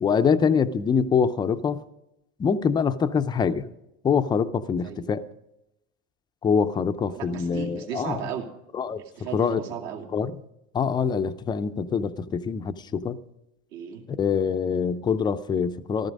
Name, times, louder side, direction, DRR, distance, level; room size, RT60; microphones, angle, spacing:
voice 1, 0.0-1.8 2.4-3.7 4.0-5.2 6.4-8.2 8.7-9.0 9.3-9.6 10.1-10.3 10.7-13.2 14.1-16.1, left 6 dB, 15° left, 0.4 m, -24 dB
voice 2, 7.0-8.5 9.0-10.1 13.7-14.0, right 8 dB, 75° right, 2.6 m, -35 dB
14.5 x 13.5 x 5.2 m
supercardioid pair, 150°, 32 cm